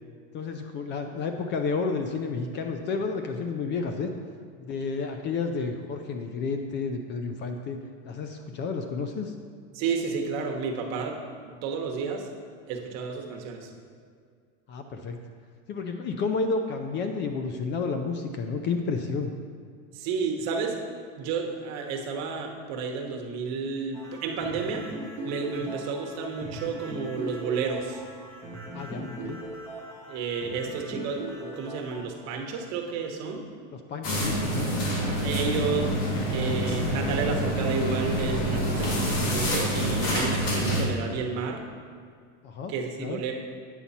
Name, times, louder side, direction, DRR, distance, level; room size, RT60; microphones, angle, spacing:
voice 1, 0.3-4.1 4.6-7.8 8.0-9.3 14.7-15.2 15.7-19.3 25.6-25.7 28.7-29.4 33.7-34.7 42.4-42.7 43.0-43.2, left 4 dB, 30° left, 6 dB, 0.5 m, -31 dB
voice 2, 9.7-11.2 11.4-12.3 12.7-13.7 19.9-20.8 21.2-24.9 25.2-28.0 30.1-33.4 34.9-41.6 42.7-43.3, right 5 dB, 45° right, 2 dB, 1.1 m, -31 dB
sound 1, 23.9-32.0, right 1 dB, 5° left, 1.3 m, -39 dB
sound 2, 34.0-40.8, equal, 75° left, 2.2 m, -27 dB
8.9 x 7.0 x 4.2 m, 2.1 s
supercardioid pair, 150°, 36 cm